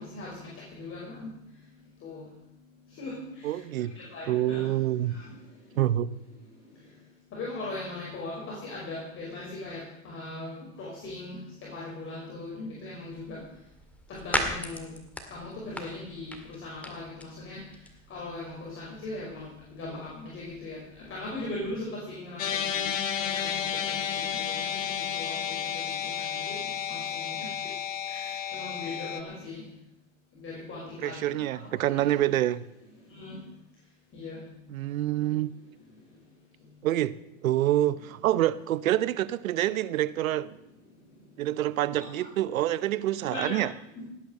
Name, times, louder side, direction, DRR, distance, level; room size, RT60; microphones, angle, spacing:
voice 1, 0.8-1.3 2.0-2.2 3.0-3.1 4.1-4.6 7.3-9.8 10.0-11.4 11.7-13.4 14.2-14.9 15.3-16.3 16.6-17.6 18.1-19.5 19.8-20.8 21.1-22.4 22.7-22.9 23.3-23.5 23.9-24.0 24.5-24.6 25.1-25.5 26.5-26.6 26.9-27.0 28.1-28.2 28.5-29.6 30.4-31.2 33.1-33.4 34.2-34.4 43.3-43.6, left 2 dB, 30° left, 5.6 m, -38 dB
voice 2, 3.4-3.9 4.3-5.1 5.8-6.1 31.0-32.6 34.7-35.5 36.8-37.1 37.4-40.6 41.4-43.7, right 13 dB, 80° right, 0.9 m, -27 dB
sound 1, 13.1-21.8, left 1 dB, 5° left, 1.9 m, -39 dB
sound 2, 22.4-29.2, left 8 dB, 70° left, 1.7 m, -32 dB
18.0 x 10.0 x 6.6 m
hypercardioid pair, 120°, 40 cm